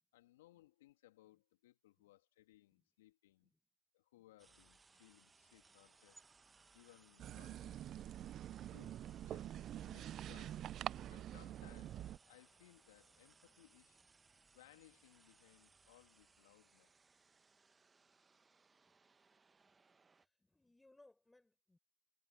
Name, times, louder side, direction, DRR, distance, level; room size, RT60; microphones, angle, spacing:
voice 1, 0.1-3.5 3.9-6.2 6.7-8.0 8.6-9.5 9.8-14.0 14.5-16.9, left 16 dB, 55° left, 2.5 m, -66 dB
sound 1, 4.4-20.3, right 4 dB, 10° right, 1.2 m, -69 dB
sound 2, 7.2-12.2, right 11 dB, 25° right, 0.3 m, -46 dB
voice 2, 20.4-21.8, left 2 dB, 5° left, 4.7 m, -70 dB
hypercardioid pair, 125°, 0 cm